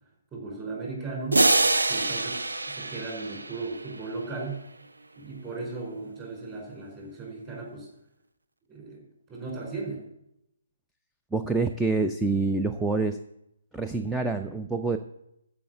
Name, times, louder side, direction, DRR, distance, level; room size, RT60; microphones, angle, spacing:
voice 1, 0.3-1.5 1.9-4.7 5.2-7.9 8.7-10.0, right 3 dB, 20° right, -1 dB, 4.7 m, -36 dB
sound 1, 1.3-4.0, right 2 dB, 75° right, 0.6 m, -25 dB
voice 2, 11.3-13.2 13.7-15.0, right 3 dB, 5° right, 6 dB, 0.4 m, -26 dB
14.0 x 5.5 x 7.9 m, 0.82 s
figure-of-eight pair, 135°, 0 cm